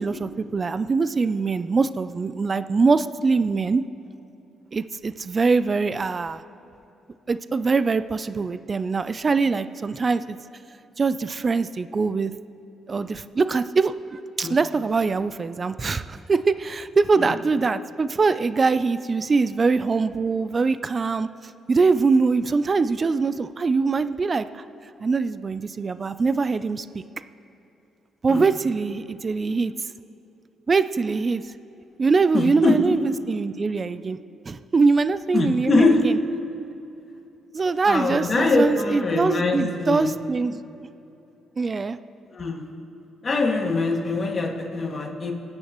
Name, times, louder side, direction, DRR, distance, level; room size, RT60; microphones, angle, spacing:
voice 1, 0.0-3.8 4.7-6.4 7.3-10.4 11.0-12.3 12.9-24.6 25.0-27.0 28.2-29.7 30.7-31.4 32.0-34.2 34.5-36.2 37.5-40.6 41.6-42.0, right 4 dB, 35° right, 12 dB, 0.4 m, -23 dB
voice 2, 32.3-32.8 35.3-36.1 37.9-40.1 42.3-42.7 43.2-45.3, left 3 dB, 40° left, 0 dB, 2.2 m, -22 dB
28.5 x 9.7 x 3.1 m, 2.9 s
cardioid pair, 90°, 0 cm